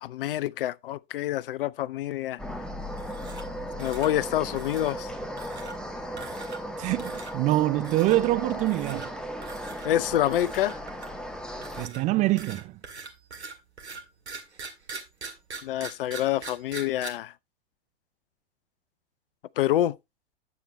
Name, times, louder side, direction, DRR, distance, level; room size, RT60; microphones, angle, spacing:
voice 1, 0.0-2.4 3.8-5.1 9.8-10.8 15.6-17.3 19.6-20.0, left 13 dB, 55° left, 0.5 m, -27 dB
sound 1, 2.4-11.9, equal, ahead, 1.3 m, -36 dB
sound 2, 2.9-3.5 3.8-4.1 4.5-5.0 5.4-5.8 6.2-6.7 7.0-7.3 7.8-8.2 8.6-9.1 9.4-9.9 10.3-11.2 11.6-17.1, right 5 dB, 80° right, 2.0 m, -42 dB
voice 2, 6.8-9.2 11.8-12.8, right 17 dB, 20° right, 0.4 m, -25 dB
9.6 x 7.6 x 3.0 m
figure-of-eight pair, 95°, 33 cm